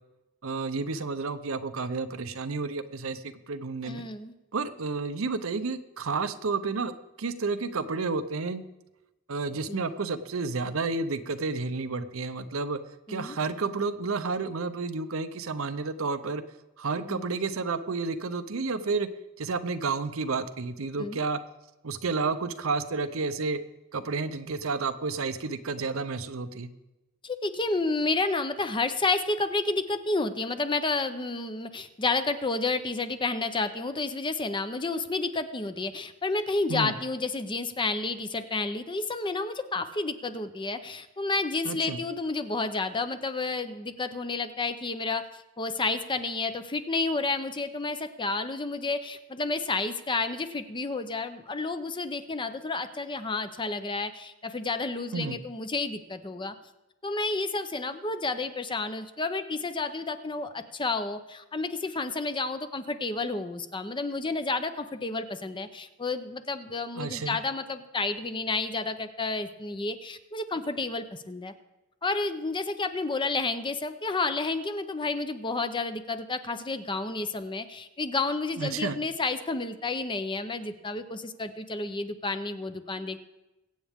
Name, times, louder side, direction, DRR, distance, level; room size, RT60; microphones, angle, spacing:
voice 1, 0.4-4.0 4.5-6.9 7.2-8.6 9.3-12.8 13.1-16.4 16.8-19.1 19.4-21.4 21.8-23.6 23.9-26.7 36.7-36.9 41.6-42.0 55.1-55.4 66.9-67.4 78.6-79.0, right 4 dB, 70° right, 11 dB, 0.7 m, -31 dB
voice 2, 3.8-4.3 9.7-9.8 13.1-13.4 17.1-17.2 21.0-21.2 27.2-45.3 45.6-56.5 57.0-71.5 72.0-83.2, left 3 dB, 25° left, 10 dB, 0.7 m, -30 dB
22.5 x 8.4 x 3.6 m, 1.0 s
head